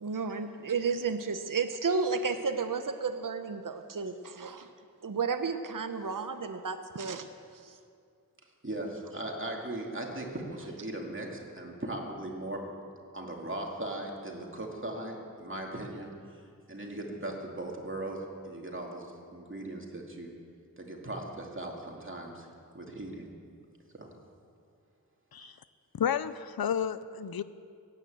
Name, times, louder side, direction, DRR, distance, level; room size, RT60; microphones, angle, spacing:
voice 1, 0.0-4.7 5.0-7.3 7.6-7.8, right 5 dB, 60° right, 8 dB, 0.8 m, -32 dB
voice 2, 8.6-12.6 13.1-16.1 16.7-20.3 20.8-22.5 22.7-23.3 23.9-24.1 25.4-25.6, right 1 dB, 35° right, 0 dB, 2.5 m, -38 dB
voice 3, 26.0-27.4, left 8 dB, 85° left, 15 dB, 0.5 m, -31 dB
17.5 x 9.6 x 7.9 m, 2.4 s
wide cardioid pair, 65°, 36 cm